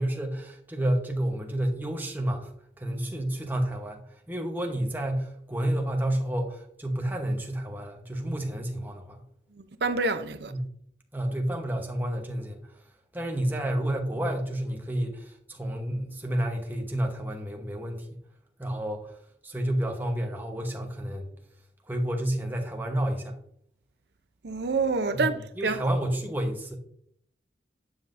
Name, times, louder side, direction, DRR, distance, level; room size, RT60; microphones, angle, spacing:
voice 1, 0.0-2.5 2.8-4.0 4.3-9.2 10.5-10.7 11.1-12.6 13.1-18.1 18.6-19.1 19.4-21.3 21.9-23.4 25.1-25.3 25.6-26.8, right 1 dB, 10° right, 1.0 m, -30 dB
voice 2, 9.8-10.5 24.4-25.8, right 3 dB, 65° right, 0.6 m, -27 dB
9.6 x 5.6 x 2.6 m
head